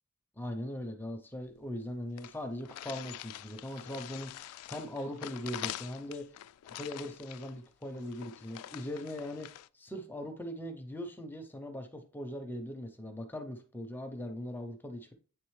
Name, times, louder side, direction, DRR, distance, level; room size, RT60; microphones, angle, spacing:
voice 1, 0.4-6.3 6.8-15.1, left 1 dB, 10° left, 6 dB, 0.6 m, -40 dB
sound 1, 1.5-1.6 1.8-1.9 2.2-9.7, left 13 dB, 85° left, 0.3 m, -45 dB
8.9 x 3.8 x 3.2 m, 0.39 s
head